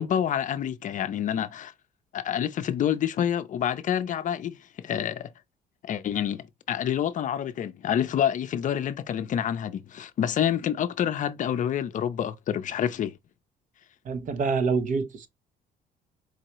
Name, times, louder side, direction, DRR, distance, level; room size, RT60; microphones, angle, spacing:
voice 1, 0.0-1.7 2.1-5.3 5.8-13.2, left 9 dB, 50° left, 0.6 m, -28 dB
voice 2, 14.0-15.3, right 4 dB, 50° right, 0.8 m, -26 dB
4.7 x 2.8 x 3.0 m
cardioid pair, 110°, 17 cm